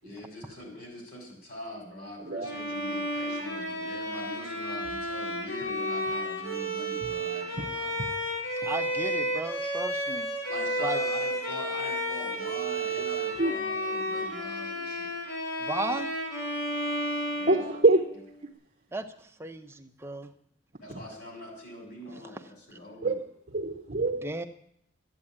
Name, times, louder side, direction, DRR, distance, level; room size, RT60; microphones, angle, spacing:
voice 1, 0.0-7.9 10.5-15.1 17.3-17.6 20.8-23.2, left 1 dB, 50° left, 1 dB, 5.5 m, -43 dB
Bowed string instrument, 2.4-18.3, equal, 85° left, 4.7 m, -32 dB
voice 2, 8.6-10.3 10.8-11.0 15.6-16.1 18.9-19.1 19.4-20.3 22.1-22.4 24.2-24.5, right 2 dB, 15° right, 7 dB, 0.8 m, -34 dB
voice 3, 17.5-18.0 20.9-21.0 23.0-23.2 23.5-24.3, right 3 dB, 40° right, 1 dB, 0.9 m, -24 dB
13.5 x 8.9 x 8.7 m, 0.70 s
head